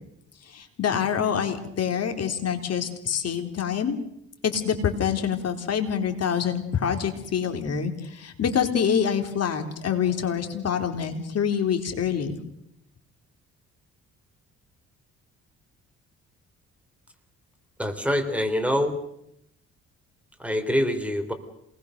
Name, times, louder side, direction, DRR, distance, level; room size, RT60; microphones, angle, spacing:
voice 1, 0.5-4.0 4.4-12.4, left 7 dB, 55° left, 6 dB, 3.8 m, -26 dB
voice 2, 17.8-19.0 20.4-21.3, equal, 5° right, 7 dB, 4.0 m, -25 dB
27.5 x 20.5 x 6.7 m, 0.77 s
cardioid pair, 90°, 30 cm